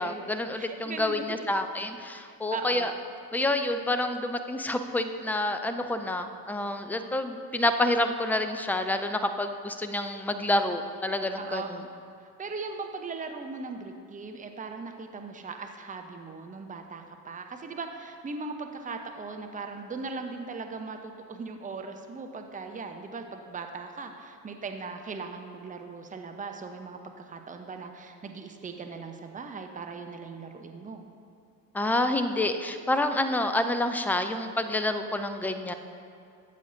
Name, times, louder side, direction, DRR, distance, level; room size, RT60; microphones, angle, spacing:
voice 1, 0.0-2.9 3.3-11.8 31.7-35.7, left 1 dB, 5° left, 8 dB, 0.4 m, -28 dB
voice 2, 0.6-1.5 2.2-2.9 11.4-11.7 12.2-31.0, right 4 dB, 15° right, 5 dB, 0.9 m, -39 dB
17.0 x 8.4 x 2.7 m, 2.4 s
figure-of-eight pair, 60°, 50 cm